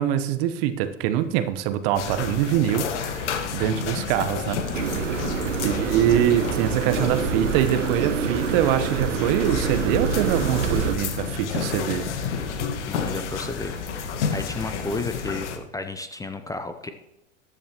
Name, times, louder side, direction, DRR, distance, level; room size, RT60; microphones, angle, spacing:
voice 1, 0.0-5.1 5.6-12.3, right 11 dB, 50° right, 11 dB, 1.1 m, -24 dB
sound 1, 2.0-15.6, left 6 dB, 65° left, 1.6 m, -31 dB
sound 2, 4.7-11.0, right 6 dB, 80° right, 1.2 m, -26 dB
voice 2, 5.4-5.8 12.9-13.8 14.3-16.9, left 3 dB, 10° left, 8 dB, 0.6 m, -33 dB
14.0 x 10.5 x 3.0 m, 0.90 s
hypercardioid pair, 95°, 37 cm